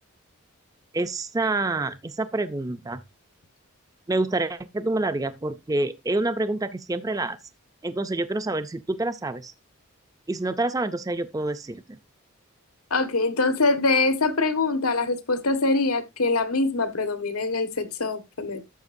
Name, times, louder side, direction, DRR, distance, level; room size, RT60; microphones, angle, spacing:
voice 1, 0.9-3.0 4.1-7.4 7.8-9.5 10.3-11.8, right 2 dB, 15° right, 0.4 m, -27 dB
voice 2, 12.9-18.6, left 3 dB, 85° left, 1.4 m, -24 dB
12.0 x 7.2 x 2.6 m
head